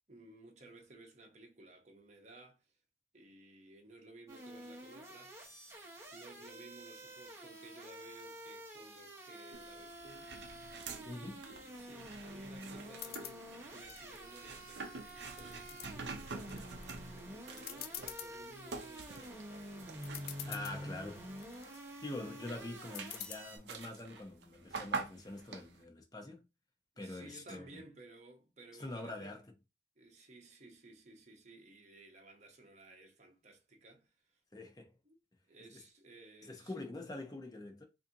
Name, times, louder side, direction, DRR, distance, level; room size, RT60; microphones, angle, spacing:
voice 1, 0.1-2.6 3.1-5.4 6.1-10.6 11.0-16.8 17.1-19.9 26.9-29.3 30.0-34.1 35.0-35.2 35.5-36.8, right 2 dB, 40° right, 0.9 m, -57 dB
sound 1, 4.3-23.6, right 1 dB, 15° right, 1.1 m, -49 dB
sound 2, 9.5-21.7 22.1-25.8, right 4 dB, 70° right, 0.6 m, -47 dB
voice 2, 11.0-11.4 20.4-21.3 22.0-26.4 27.0-27.8 28.7-29.4 34.5-34.9 35.7-35.8 36.4-37.8, left 2 dB, 20° left, 0.8 m, -45 dB
sound 3, 12.9-13.4 13.9-14.7 15.1-15.9 16.4-16.8 17.2-17.3 17.6-18.3 18.8-19.2 19.8-19.9 20.0-20.8 21.3-21.8 22.9-23.4, left 10 dB, 55° left, 0.4 m, -46 dB
4.2 x 2.7 x 2.6 m
head